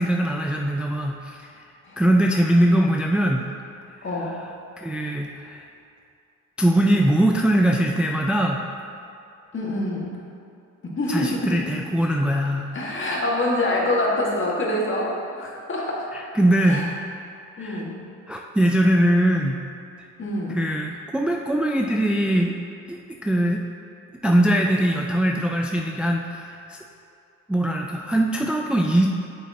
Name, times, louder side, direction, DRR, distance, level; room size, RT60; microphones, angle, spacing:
voice 1, 0.0-1.6 2.0-3.5 4.8-5.6 6.6-8.6 11.1-12.7 16.1-17.0 17.5-17.8 18.3-19.6 20.0-20.1 20.5-22.6 22.9-23.6 24.2-26.8 27.5-29.1, right 1 dB, 5° right, 1 dB, 0.4 m, -21 dB
voice 2, 4.0-4.4 9.5-10.1 11.0-11.7 12.7-16.1 16.6-16.9 17.6-18.0 20.2-20.6, left 1 dB, 40° left, -3 dB, 1.8 m, -25 dB
8.5 x 7.3 x 2.8 m, 2.5 s
cardioid pair, 90°, 30 cm